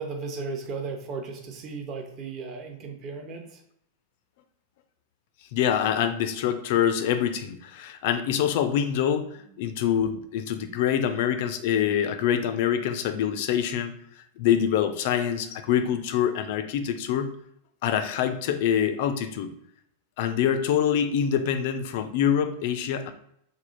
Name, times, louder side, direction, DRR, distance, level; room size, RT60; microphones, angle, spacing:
voice 1, 0.0-3.6 9.5-9.6, right 4 dB, 35° right, 3 dB, 0.7 m, -35 dB
voice 2, 5.5-13.9 14.4-17.4 17.8-19.5 20.2-23.1, left 9 dB, 50° left, 8 dB, 0.4 m, -25 dB
3.5 x 2.0 x 3.8 m, 0.72 s
figure-of-eight pair, 90°, 0 cm